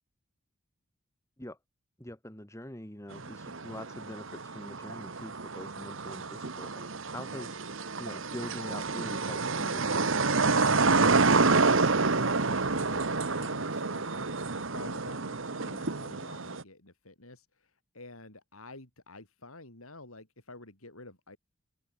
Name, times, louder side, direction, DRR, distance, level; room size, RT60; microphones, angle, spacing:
voice 1, 2.0-7.6 8.0-9.9, left 1 dB, 15° left, 1.9 m, -44 dB
sound 1, 3.1-16.6, right 4 dB, 65° right, 1.4 m, -28 dB
voice 2, 11.4-21.4, left 2 dB, 80° left, 6.2 m, -49 dB
open air
head